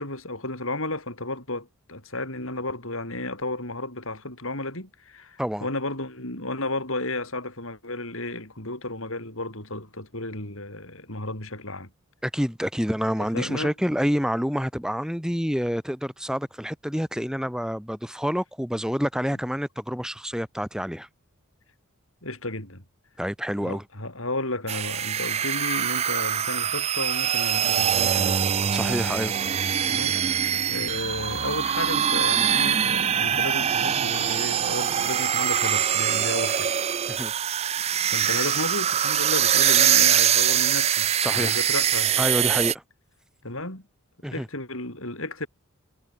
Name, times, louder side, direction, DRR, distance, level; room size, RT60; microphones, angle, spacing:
voice 1, 0.0-11.9 13.2-13.7 22.2-22.8 23.6-28.5 29.9-30.2 30.7-36.7 38.0-42.2 43.4-43.9 44.3-45.5, left 2 dB, 65° left, 7.8 m, -33 dB
voice 2, 12.2-21.1 23.2-23.8 28.7-29.3 37.1-37.3 41.2-41.6 42.2-42.8 44.2-44.5, equal, 5° right, 5.4 m, -28 dB
sound 1, 24.7-42.7, right 9 dB, 30° right, 0.4 m, -23 dB
head